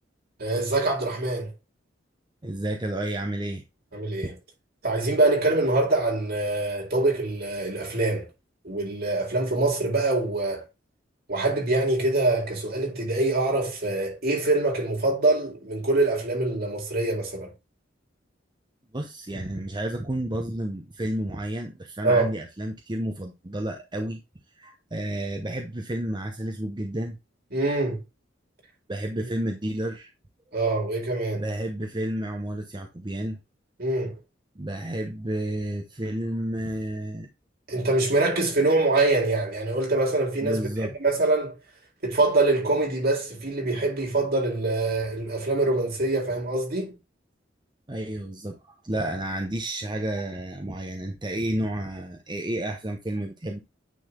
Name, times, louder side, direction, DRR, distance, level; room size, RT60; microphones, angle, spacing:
voice 1, 0.4-1.5 3.9-4.3 4.8-8.3 8.6-10.6 11.3-17.5 22.0-22.3 27.5-28.0 30.5-31.4 33.8-34.1 37.7-40.7 41.0-41.6 42.0-46.9, right 2 dB, 55° right, 4.2 m, -24 dB
voice 2, 2.4-3.6 18.9-24.2 24.6-27.2 28.9-30.1 31.4-33.4 34.6-37.3 40.4-40.9 47.9-53.6, right 1 dB, 25° right, 0.9 m, -31 dB
9.3 x 3.9 x 3.7 m
head